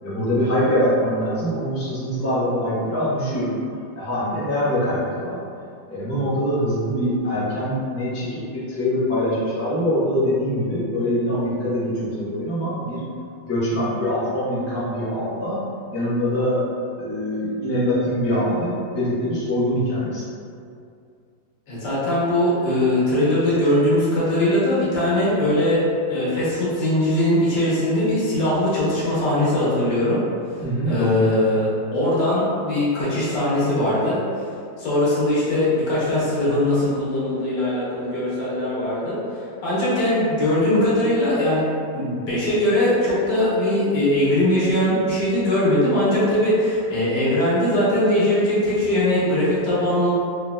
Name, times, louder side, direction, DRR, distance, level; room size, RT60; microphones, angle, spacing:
voice 1, 0.0-3.5 4.0-5.4 5.9-13.0 13.4-15.6 15.9-16.6 17.0-20.2 23.6-23.7 30.6-31.3, equal, 15° left, -11 dB, 0.5 m, -23 dB
voice 2, 21.7-25.8 26.1-30.2 30.9-34.2 34.8-39.2 39.6-41.6 41.9-50.1, left 1 dB, 70° left, -9 dB, 1.6 m, -20 dB
3.9 x 2.7 x 2.2 m, 2.4 s
omnidirectional pair, 2.0 m